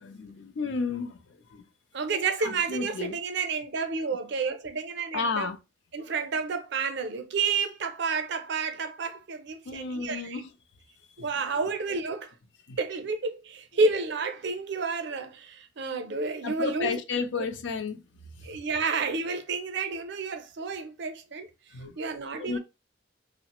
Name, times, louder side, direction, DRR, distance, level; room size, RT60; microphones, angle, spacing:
voice 1, 0.0-1.2 1.5-1.6 2.4-3.2 5.1-5.6 9.6-10.5 12.7-12.8 16.4-18.0 21.7-21.9 22.4-22.6, left 4 dB, 65° left, 0.5 m, -32 dB
voice 2, 1.9-5.5 5.9-10.4 11.2-12.3 12.8-17.2 18.4-21.5 22.0-22.6, right 4 dB, 60° right, 0.5 m, -30 dB
3.1 x 2.0 x 2.9 m
head